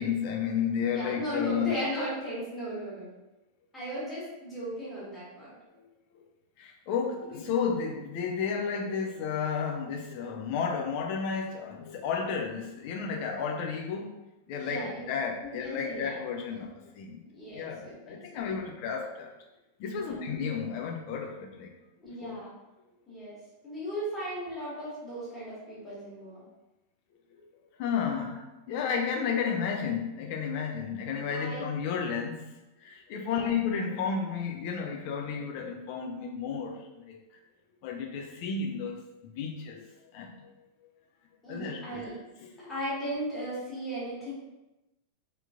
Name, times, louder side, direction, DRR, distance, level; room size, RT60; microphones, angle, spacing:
voice 1, 0.0-1.7 5.7-5.8 6.6-14.1 14.5-17.2 17.5-19.3 19.8-21.7 22.2-22.4 27.8-28.4 28.7-32.4 32.8-37.2 37.8-39.0 39.4-40.5 41.5-42.0 42.4-42.7, left 6 dB, 45° left, 1 dB, 0.5 m, -32 dB
voice 2, 0.9-3.2 3.7-5.6 14.6-15.0 15.4-16.2 16.5-16.6 17.3-18.4 19.9-20.2 22.0-22.5 23.1-23.3 23.6-26.4 28.2-28.3 31.3-31.6 33.2-33.5 41.4-42.2 42.7-44.3, right 1 dB, 15° left, -9 dB, 1.5 m, -36 dB
3.4 x 2.9 x 2.5 m, 1.0 s
figure-of-eight pair, 90°, 0 cm